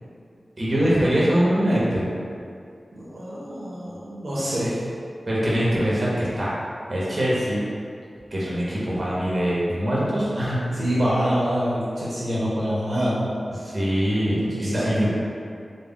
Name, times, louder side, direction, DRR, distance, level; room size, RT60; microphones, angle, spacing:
voice 1, 0.6-2.1 5.3-6.5 6.9-7.6 8.3-10.6 13.6-15.1, equal, 40° right, -7 dB, 0.7 m, -23 dB
voice 2, 3.0-4.8 10.7-13.4 14.3-15.1, equal, 75° right, -9 dB, 0.5 m, -26 dB
2.2 x 2.0 x 3.5 m, 2.4 s
wide cardioid pair, 65°, 0 cm